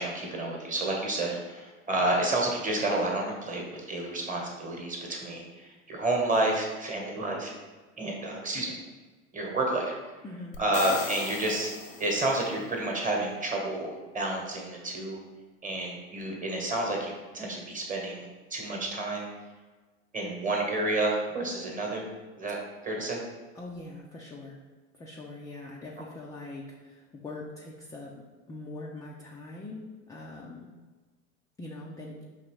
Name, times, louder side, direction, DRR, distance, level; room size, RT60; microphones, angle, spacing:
voice 1, 0.0-7.5 8.0-8.8 9.3-9.9 10.6-11.7 12.0-15.2 15.6-19.3 20.1-22.1 22.4-22.6 22.8-23.2, right 2 dB, 20° right, -1 dB, 1.1 m, -30 dB
voice 2, 10.2-10.6 23.6-24.6 25.0-28.1 28.5-30.7 31.6-32.2, left 2 dB, 10° left, -3 dB, 0.3 m, -42 dB
sound 1, 10.5-12.6, left 5 dB, 85° left, 0.6 m, -38 dB
5.1 x 3.0 x 3.0 m, 1.3 s
hypercardioid pair, 85°, 39 cm